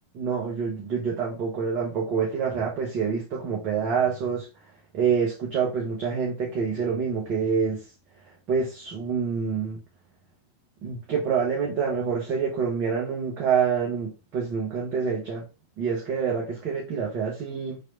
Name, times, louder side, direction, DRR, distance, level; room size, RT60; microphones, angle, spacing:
voice 1, 0.1-4.5 4.9-7.8 8.5-9.8 10.8-15.4 15.8-17.8, right 6 dB, 40° right, 1.0 m, -27 dB
4.3 x 3.2 x 2.6 m
figure-of-eight pair, 90°, 0 cm